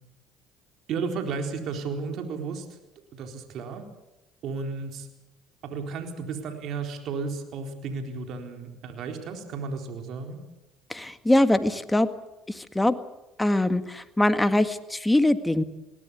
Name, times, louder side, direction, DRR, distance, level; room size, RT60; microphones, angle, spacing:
voice 1, 0.9-2.8 3.1-3.9 4.4-5.1 5.6-10.4, right 4 dB, 65° right, 4 dB, 4.0 m, -33 dB
voice 2, 10.9-12.1 12.6-12.9 13.4-15.6, left 1 dB, 10° left, 10 dB, 1.9 m, -22 dB
21.5 x 17.5 x 8.5 m, 0.97 s
supercardioid pair, 75°, 0 cm